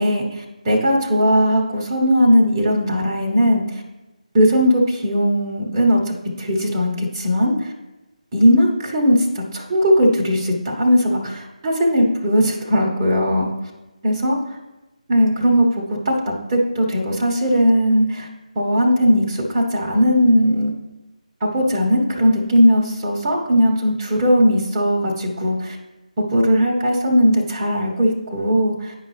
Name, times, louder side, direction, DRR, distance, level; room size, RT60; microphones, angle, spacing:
voice 1, 0.0-3.8 4.3-7.7 8.3-13.5 14.0-14.6 15.1-18.3 18.5-20.7 21.4-25.8 26.2-28.9, equal, 20° right, -2 dB, 1.2 m, -18 dB
9.5 x 5.2 x 3.2 m, 1.0 s
figure-of-eight pair, 155°, 4 cm